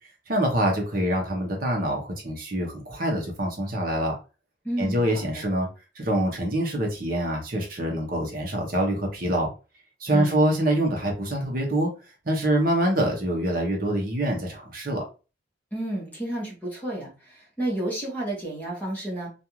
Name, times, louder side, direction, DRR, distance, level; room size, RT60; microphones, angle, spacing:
voice 1, 0.3-4.1 4.8-5.7 6.0-9.5 10.0-11.9 12.2-15.0, right 1 dB, 45° right, 1 dB, 0.8 m, -25 dB
voice 2, 4.6-5.4 10.1-10.4 15.7-19.3, right 1 dB, 10° left, -4 dB, 1.0 m, -31 dB
2.5 x 2.3 x 2.9 m, 0.32 s
head